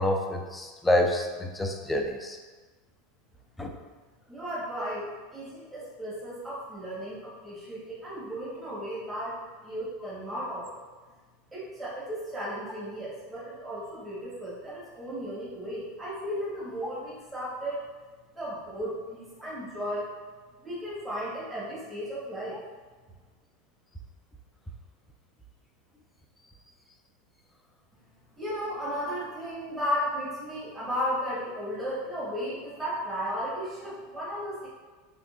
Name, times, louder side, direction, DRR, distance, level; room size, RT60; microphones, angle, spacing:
voice 1, 0.0-2.4 3.6-3.7, left 1 dB, 10° left, 2 dB, 0.4 m, -27 dB
voice 2, 4.3-9.4 9.6-10.8 11.5-17.8 18.3-20.1 20.6-22.5 28.3-34.7, equal, 10° right, -8 dB, 1.1 m, -34 dB
3.7 x 3.3 x 2.4 m, 1.3 s
supercardioid pair, 130°, 0 cm